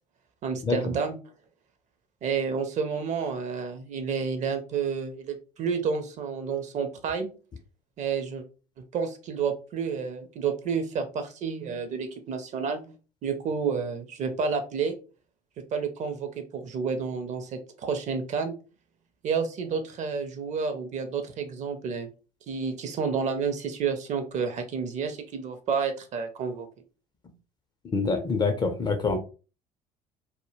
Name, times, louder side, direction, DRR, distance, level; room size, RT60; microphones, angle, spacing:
voice 1, 0.4-1.2 2.2-7.3 8.0-8.4 8.9-12.9 13.2-14.9 15.7-18.5 19.2-22.1 22.5-26.7, right 6 dB, 35° right, 0.5 m, -30 dB
voice 2, 27.9-29.2, left 4 dB, 20° left, 0.4 m, -25 dB
2.1 x 2.1 x 3.0 m
figure-of-eight pair, 60°, 21 cm